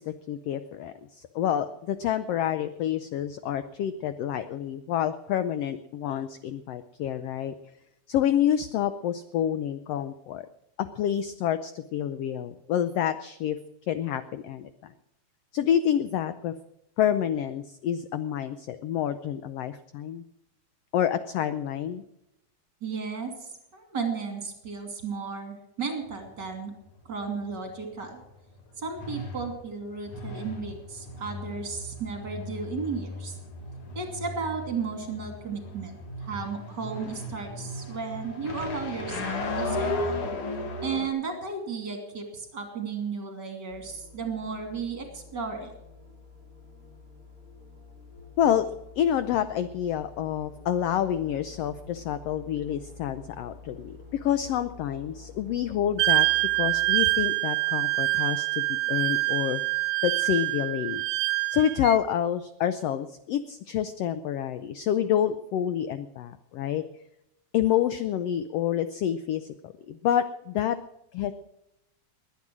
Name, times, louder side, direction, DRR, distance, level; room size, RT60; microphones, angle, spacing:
voice 1, 0.0-7.5 8.1-10.5 10.8-13.6 13.9-14.9 15.5-16.5 17.0-20.2 20.9-22.0 48.4-48.7 49.0-56.3 56.6-59.6 60.0-61.0 61.5-66.8 67.5-70.8 71.1-71.3, left 10 dB, 80° left, 12 dB, 1.4 m, -28 dB
voice 2, 22.8-26.7 27.0-28.2 28.8-33.3 33.9-40.2 40.8-45.7, right 5 dB, 35° right, 5 dB, 3.1 m, -34 dB
sound 1, 26.0-41.1, left 2 dB, 50° left, 2.4 m, -36 dB
sound 2, 43.7-57.3, left 4 dB, 15° left, 4.5 m, -48 dB
Wind instrument woodwind instrument, 56.0-62.0, right 20 dB, 80° right, 2.0 m, -25 dB
20.5 x 9.5 x 6.2 m, 0.84 s
omnidirectional pair, 3.6 m